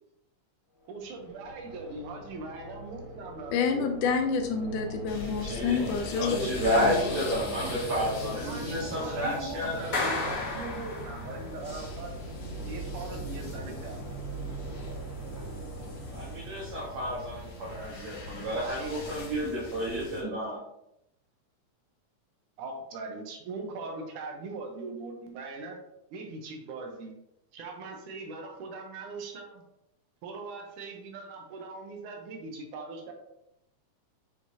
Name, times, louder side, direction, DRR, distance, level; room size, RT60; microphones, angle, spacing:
sound 1, 0.8-17.8, right 1 dB, 15° right, 1.3 m, -42 dB
voice 1, 0.9-3.9 7.6-12.1 12.7-14.0 22.6-25.8 26.1-27.1 27.5-29.6 30.2-33.1, right 3 dB, 80° right, 2 dB, 2.5 m, -40 dB
voice 2, 3.5-6.5 6.8-7.2, left 5 dB, 85° left, 5 dB, 2.3 m, -28 dB
sound 2, 5.1-20.2, left 2 dB, 70° left, 2.9 m, -42 dB
voice 3, 5.4-5.9 6.2-10.1 16.1-20.6, equal, 60° right, -6 dB, 2.6 m, -31 dB
Clapping, 9.9-11.6, left 3 dB, 45° left, 1.1 m, -32 dB
8.5 x 4.8 x 2.8 m, 0.82 s
omnidirectional pair, 3.6 m